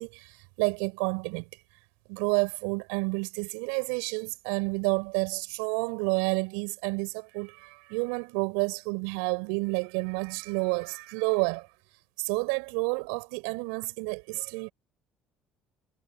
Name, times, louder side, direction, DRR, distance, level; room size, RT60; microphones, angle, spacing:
voice 1, 0.0-1.5 2.1-11.7 12.2-14.7, right 35 dB, 85° right, 7.9 m, -30 dB
supercardioid pair, 75°, 0 cm